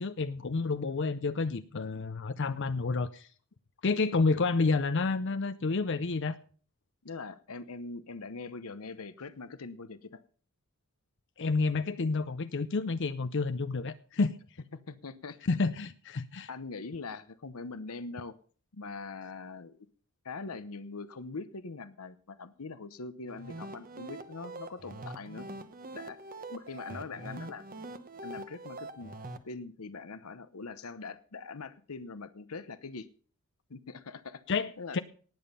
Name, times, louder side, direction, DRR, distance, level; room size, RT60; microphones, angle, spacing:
voice 1, 0.0-3.3 3.8-6.4 11.4-14.4 15.4-16.5 34.5-35.0, left 3 dB, 55° left, 11 dB, 0.6 m, -29 dB
voice 2, 7.0-10.2 14.7-15.4 16.5-18.4 18.7-19.9 20.2-25.5 25.9-26.2 26.5-27.6 28.2-29.1 29.4-33.1 33.7-35.0, left 4 dB, 80° left, 13 dB, 0.9 m, -42 dB
sound 1, 23.3-29.4, right 2 dB, 40° right, 1.0 m, -44 dB
18.5 x 7.2 x 5.6 m, 0.43 s
head